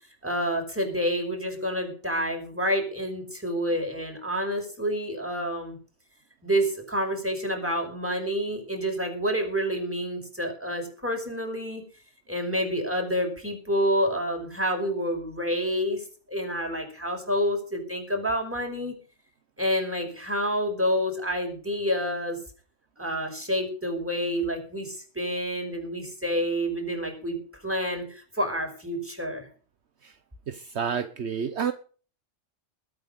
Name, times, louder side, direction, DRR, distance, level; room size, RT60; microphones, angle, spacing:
voice 1, 0.2-5.8 6.4-11.8 12.3-18.9 19.6-22.4 23.0-27.4 27.6-29.5, equal, 10° right, 2 dB, 5.4 m, -28 dB
voice 2, 30.5-31.7, right 7 dB, 65° right, 10 dB, 1.2 m, -29 dB
21.0 x 8.8 x 5.3 m, 0.41 s
omnidirectional pair, 1.3 m